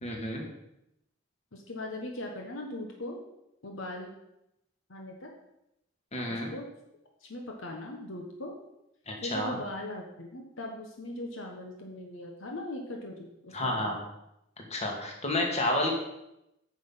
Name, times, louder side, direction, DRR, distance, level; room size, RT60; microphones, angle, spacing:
voice 1, 0.0-0.4 6.1-6.5 9.1-9.6 13.5-14.0 14.6-15.9, left 1 dB, 35° left, 1 dB, 2.0 m, -30 dB
voice 2, 1.5-3.2 3.6-4.1 4.9-5.3 6.3-6.7 7.2-8.5 9.2-13.9, left 1 dB, 70° left, 1 dB, 1.3 m, -39 dB
9.5 x 6.3 x 5.7 m, 0.85 s
head